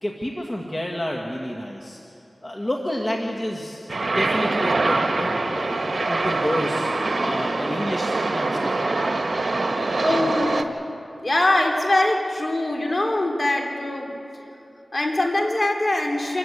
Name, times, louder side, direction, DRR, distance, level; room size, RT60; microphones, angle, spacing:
voice 1, 0.0-2.0 2.4-6.9 7.2-10.2, left 1 dB, 30° left, 0 dB, 2.1 m, -30 dB
sound 1, 3.9-10.6, right 3 dB, 65° right, 1.4 m, -24 dB
voice 2, 10.0-10.6 11.2-14.1 14.9-16.4, left 1 dB, 45° left, 2 dB, 3.5 m, -22 dB
27.0 x 14.5 x 8.4 m, 2.8 s
cardioid pair, 45°, 0 cm